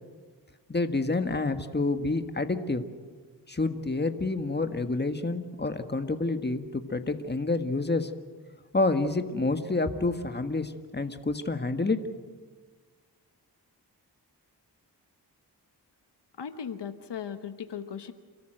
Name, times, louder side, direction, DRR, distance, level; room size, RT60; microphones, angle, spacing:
voice 1, 0.7-2.9 3.5-8.1 8.7-12.0, left 3 dB, 25° left, 8 dB, 1.7 m, -28 dB
voice 2, 16.4-18.1, left 7 dB, 85° left, 9 dB, 1.2 m, -37 dB
29.5 x 13.5 x 7.9 m, 1.4 s
cardioid pair, 55°, 40 cm